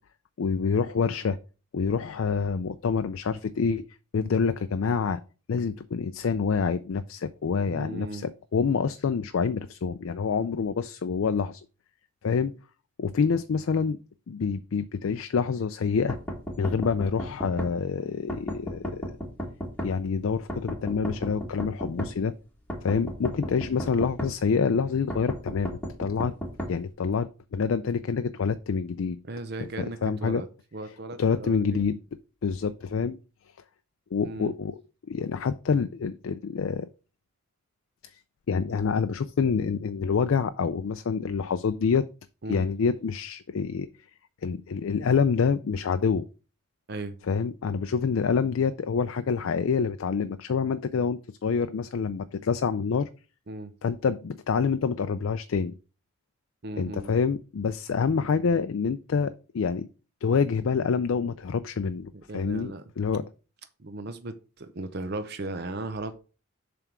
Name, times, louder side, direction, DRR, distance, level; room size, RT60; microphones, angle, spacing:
voice 1, 0.4-1.4 1.7-3.8 4.1-5.2 5.5-11.6 12.2-12.5 13.0-14.0 14.3-16.2 16.6-19.2 19.8-22.3 22.8-26.3 26.7-29.2 29.8-30.4 31.2-32.0 32.4-33.2 34.1-34.8 35.1-36.9 38.5-42.1 42.5-43.9 44.4-46.2 47.3-53.1 53.8-55.7 56.7-59.9 60.2-63.2, left 5 dB, 60° left, 10 dB, 0.4 m, -27 dB
voice 2, 7.7-8.3 29.3-30.5 30.7-31.8 34.2-34.5 42.4-42.6 46.9-47.1 53.5-53.7 56.6-57.1 62.1-62.8 63.8-66.2, right 2 dB, 45° right, 10 dB, 0.6 m, -36 dB
sound 1, 16.1-17.7 18.3-19.9 20.5-22.1 22.7-24.3 25.1-26.7, equal, 5° left, 1.5 m, -33 dB
7.2 x 3.4 x 5.9 m, 0.34 s
head